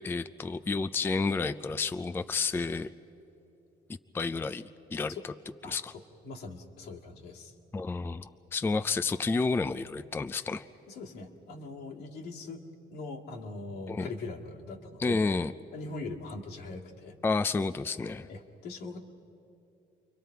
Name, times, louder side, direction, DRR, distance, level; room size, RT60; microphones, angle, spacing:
voice 1, 0.0-2.9 4.1-5.3 5.7-5.9 7.7-10.6 13.9-14.1 15.0-15.5 17.2-18.3, left 4 dB, 15° left, 11 dB, 0.4 m, -30 dB
voice 2, 6.2-7.5 10.9-12.6 12.9-15.2 15.7-17.1 18.3-19.0, left 3 dB, 80° left, -1 dB, 2.1 m, -41 dB
29.5 x 23.5 x 4.6 m, 2.9 s
cardioid pair, 110°, 17 cm